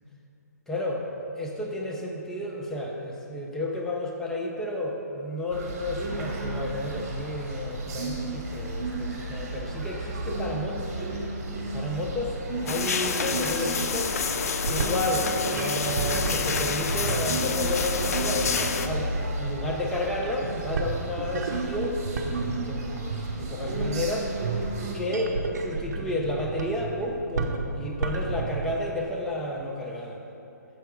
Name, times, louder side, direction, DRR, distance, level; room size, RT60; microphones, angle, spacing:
voice 1, 0.7-1.0 1.4-11.0 11.7-14.1 14.7-19.1 19.4-24.3 24.9-30.2, left 1 dB, 5° left, -1 dB, 0.5 m, -31 dB
sound 1, 5.5-24.9, right 2 dB, 50° right, 1.3 m, -33 dB
sound 2, 12.7-18.9, left 6 dB, 60° left, 0.4 m, -29 dB
sound 3, 14.4-28.8, right 3 dB, 65° right, 0.7 m, -33 dB
6.8 x 4.5 x 4.8 m, 3.0 s
hypercardioid pair, 145°, 10 cm